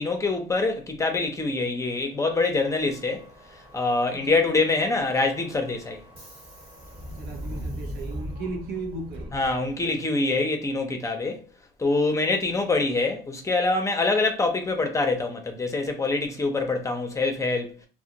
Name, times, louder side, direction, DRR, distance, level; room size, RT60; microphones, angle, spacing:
voice 1, 0.0-3.3 3.7-6.0 9.3-11.5 11.8-17.8, left 3 dB, 20° left, 0.6 m, -25 dB
Subway metro underground, 2.6-10.0, equal, 35° right, 1.1 m, -40 dB
voice 2, 7.1-9.4, right 3 dB, 80° right, 0.7 m, -36 dB
2.4 x 2.1 x 2.8 m
cardioid pair, 110°, 17 cm